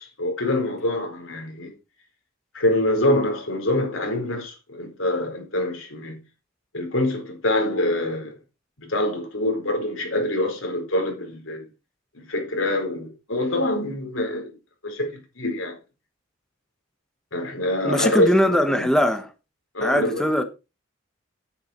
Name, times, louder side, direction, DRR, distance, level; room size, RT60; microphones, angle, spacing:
voice 1, 0.0-1.7 2.5-6.2 6.7-8.4 8.8-11.7 12.1-14.5 14.8-15.8 17.3-18.9 19.7-20.3, left 1 dB, 85° left, 4.6 m, -25 dB
voice 2, 17.8-19.3 19.8-20.4, equal, 5° left, 1.2 m, -21 dB
9.8 x 9.3 x 4.5 m
head